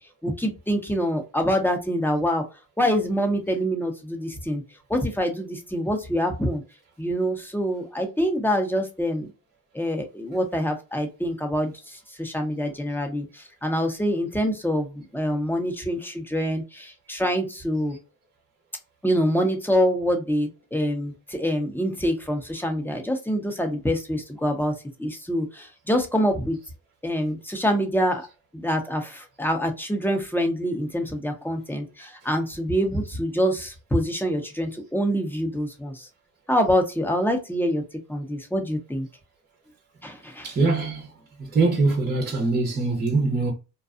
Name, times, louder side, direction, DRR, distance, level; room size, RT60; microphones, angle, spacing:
voice 1, 0.2-2.4 2.8-4.6 4.9-6.6 7.0-9.3 9.7-18.0 19.0-24.7 25.0-26.6 27.0-28.3 28.5-36.1 36.5-37.8 38.1-39.1 40.0-40.5, equal, 5° left, 0.8 m, -25 dB
voice 2, 40.4-41.1 41.4-43.5, right 3 dB, 25° right, 0.8 m, -23 dB
2.6 x 2.3 x 2.4 m
cardioid pair, 80°, 37 cm